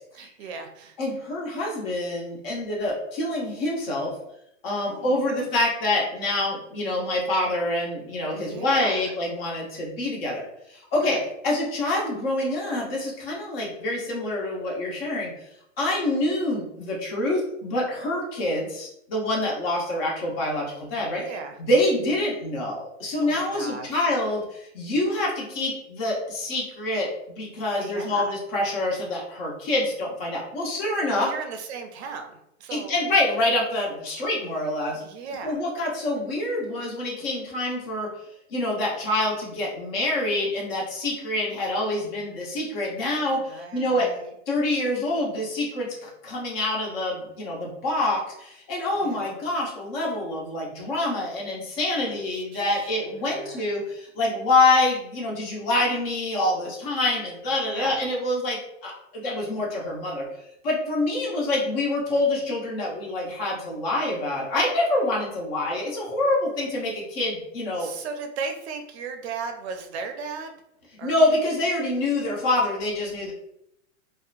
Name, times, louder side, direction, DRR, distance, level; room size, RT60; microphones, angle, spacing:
voice 1, 0.1-1.0 4.9-5.5 8.4-9.1 11.0-11.3 21.2-21.6 23.2-24.1 27.8-28.4 31.1-33.0 34.9-35.6 43.1-44.3 49.0-49.3 52.1-53.7 57.7-58.0 67.8-70.5 71.0-71.1, right 5 dB, 60° right, 5 dB, 0.5 m, -37 dB
voice 2, 1.0-4.1 4.6-11.2 11.4-15.3 15.8-21.2 21.7-31.3 32.7-35.0 35.4-38.1 38.5-44.1 44.5-60.2 60.6-67.9 71.0-73.3, left 2 dB, 50° left, -2 dB, 1.0 m, -26 dB
2.8 x 2.1 x 2.4 m, 0.78 s
hypercardioid pair, 150°, 38 cm